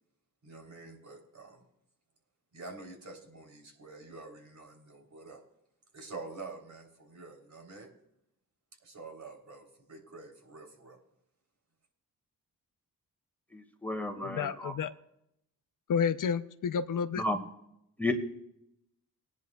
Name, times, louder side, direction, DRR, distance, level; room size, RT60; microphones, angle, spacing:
voice 1, 0.4-1.6 2.5-5.4 5.9-7.9 8.8-11.0, right 3 dB, 50° right, 1 dB, 3.5 m, -47 dB
voice 2, 13.5-14.7 17.2-17.4 18.0-18.1, left 2 dB, 5° left, 5 dB, 1.8 m, -32 dB
voice 3, 14.2-14.9 15.9-17.2, left 6 dB, 60° left, 12 dB, 0.6 m, -30 dB
20.5 x 10.5 x 2.3 m, 0.79 s
cardioid pair, 65°, 36 cm